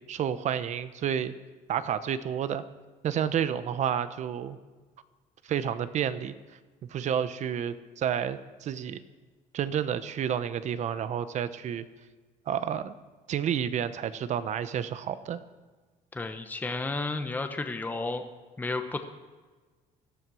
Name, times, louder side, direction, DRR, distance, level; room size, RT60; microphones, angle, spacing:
voice 1, 0.0-1.3 1.7-2.6 3.0-4.6 5.5-6.3 6.9-9.0 9.5-11.8 12.5-12.9 13.3-15.4, right 9 dB, 50° right, 13 dB, 0.9 m, -30 dB
voice 2, 16.1-18.2 18.6-19.2, left 3 dB, 10° left, 6 dB, 1.0 m, -32 dB
17.0 x 12.5 x 6.2 m, 1.4 s
cardioid pair, 140°, 16 cm